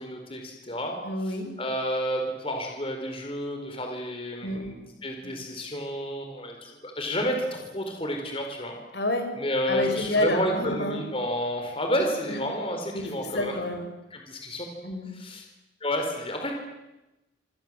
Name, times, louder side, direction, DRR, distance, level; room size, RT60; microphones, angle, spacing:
voice 1, 0.0-1.0 1.6-8.7 9.4-13.5 14.1-14.7 15.2-15.4 15.8-16.5, equal, 30° left, 3 dB, 4.4 m, -30 dB
voice 2, 1.0-1.5 4.4-4.7 5.2-5.4 8.9-9.3 9.7-11.0 12.3-12.4 12.9-13.9 14.8-15.1, left 1 dB, 65° left, 6 dB, 5.1 m, -29 dB
27.0 x 26.5 x 7.7 m, 1.0 s
head